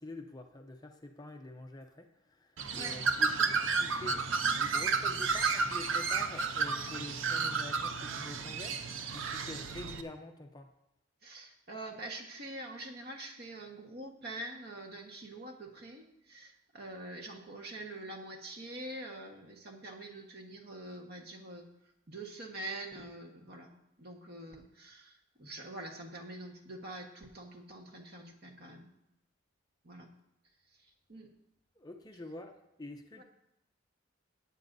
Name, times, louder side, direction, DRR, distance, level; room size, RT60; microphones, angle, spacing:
voice 1, 0.0-4.2 4.5-10.7 31.8-33.2, left 2 dB, 20° left, 4 dB, 0.6 m, -47 dB
Bird, 2.6-10.0, right 4 dB, 70° right, 0.7 m, -32 dB
voice 2, 11.2-21.7 22.1-23.7 24.0-28.9 29.8-30.1 30.7-31.3 33.2-33.3, right 1 dB, 50° right, 2 dB, 1.4 m, -45 dB
16.5 x 8.6 x 2.7 m, 0.84 s
head